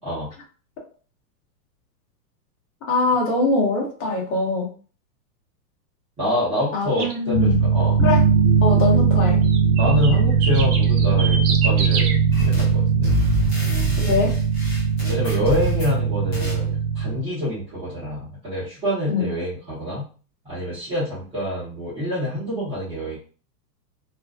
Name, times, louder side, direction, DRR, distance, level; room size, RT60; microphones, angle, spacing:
voice 1, 0.0-0.3 6.2-8.0 9.8-13.1 15.1-20.1 20.4-23.2, left 1 dB, 10° right, -12 dB, 0.8 m, -26 dB
voice 2, 2.9-4.7 6.7-7.6 8.0-8.2 8.6-9.4 14.0-14.3 19.1-19.3, left 3 dB, 50° left, -1 dB, 1.1 m, -22 dB
sound 1, 7.0-7.2 9.4-12.2, right 5 dB, 65° right, 0.8 m, -28 dB
sound 2, 7.3-17.2, right 6 dB, 90° right, 0.9 m, -19 dB
sound 3, 12.3-12.8 13.0-16.0 16.3-16.6, left 2 dB, 20° left, 0.3 m, -28 dB
2.5 x 2.2 x 2.3 m, 0.39 s
hypercardioid pair, 150°, 49 cm